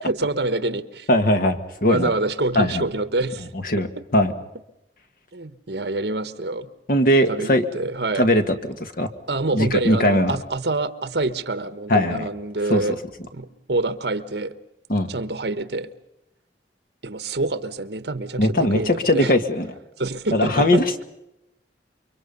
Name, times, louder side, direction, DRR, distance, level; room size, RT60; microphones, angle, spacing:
voice 1, 0.0-1.1 1.9-3.5 5.3-6.7 7.3-8.3 9.3-13.0 13.3-14.5 15.1-15.9 17.0-19.3 20.0-21.0, right 2 dB, 65° right, 12 dB, 1.3 m, -26 dB
voice 2, 1.1-2.1 2.5-2.8 3.6-4.3 6.9-7.7 8.1-9.1 9.5-10.4 11.9-12.3 12.7-12.8 14.9-15.1 18.4-19.7 20.3-20.8, left 1 dB, 50° left, 7 dB, 1.8 m, -19 dB
29.0 x 24.0 x 5.5 m, 0.89 s
head